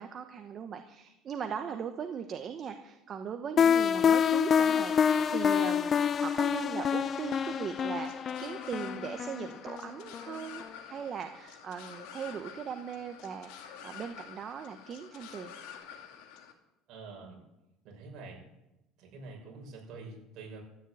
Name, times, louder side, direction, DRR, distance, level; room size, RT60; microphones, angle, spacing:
voice 1, 0.0-15.5, right 7 dB, 30° right, 6 dB, 1.0 m, -39 dB
sound 1, 3.6-10.3, left 7 dB, 30° left, 0.4 m, -27 dB
sound 2, 7.3-16.5, left 8 dB, 75° left, 2.4 m, -49 dB
voice 2, 16.9-17.4 17.8-18.4 19.0-20.6, right 3 dB, 50° right, 0 dB, 6.2 m, -46 dB
14.0 x 10.5 x 8.6 m, 0.94 s
cardioid pair, 150°, 0 cm